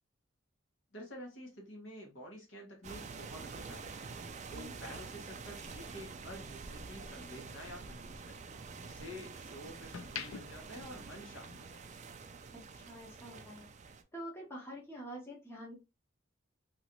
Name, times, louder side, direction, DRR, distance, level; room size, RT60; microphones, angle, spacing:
voice 1, 0.9-4.2 4.5-8.4 8.8-11.8, left 1 dB, 65° left, 1.2 m, -49 dB
sound 1, 2.8-14.0, right 4 dB, 35° right, 0.4 m, -47 dB
sound 2, 9.9-11.8 12.1-12.4, left 7 dB, 85° left, 0.5 m, -48 dB
voice 2, 12.5-13.7 14.1-15.7, right 1 dB, 10° left, 0.9 m, -47 dB
3.0 x 2.6 x 2.9 m
head